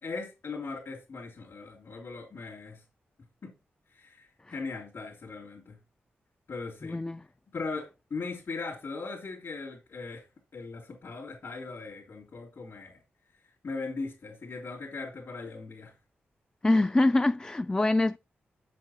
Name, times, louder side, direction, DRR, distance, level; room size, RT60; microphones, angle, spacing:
voice 1, 0.0-2.8 3.4-3.5 3.9-5.8 6.5-7.0 7.5-10.2 10.5-13.0 13.4-15.9, left 4 dB, 65° left, 3.2 m, -39 dB
voice 2, 6.8-7.3 16.6-18.2, left 2 dB, 20° left, 0.3 m, -25 dB
7.5 x 7.1 x 4.3 m
cardioid pair, 60°, 4 cm